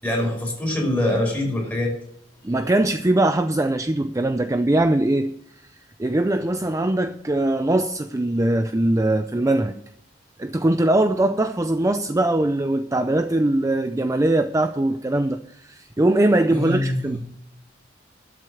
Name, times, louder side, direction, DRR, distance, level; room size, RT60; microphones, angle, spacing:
voice 1, 0.0-1.9 16.5-17.2, left 1 dB, 10° left, 5.1 m, -24 dB
voice 2, 2.4-5.3 6.0-9.8 10.4-15.4 15.6-17.2, right 1 dB, 20° right, 0.5 m, -21 dB
12.5 x 7.6 x 6.7 m
head